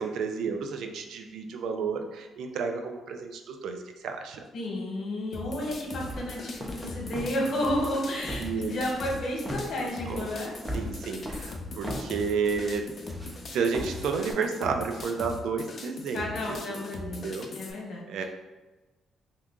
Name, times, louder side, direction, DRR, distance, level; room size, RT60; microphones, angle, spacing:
voice 1, 0.0-4.4 8.4-8.7 10.1-10.3 10.7-12.8 13.5-17.5 18.1-18.2, right 5 dB, 75° right, 5 dB, 0.3 m, -31 dB
voice 2, 4.5-8.4 8.7-10.5 16.1-17.3 17.6-18.2, left 1 dB, 60° left, -1 dB, 1.0 m, -32 dB
sound 1, 5.3-17.7, left 3 dB, 45° left, 0.5 m, -40 dB
sound 2, 5.7-14.3, equal, 10° right, 0.5 m, -39 dB
2.7 x 2.4 x 3.5 m, 1.2 s
cardioid pair, 90°, 0 cm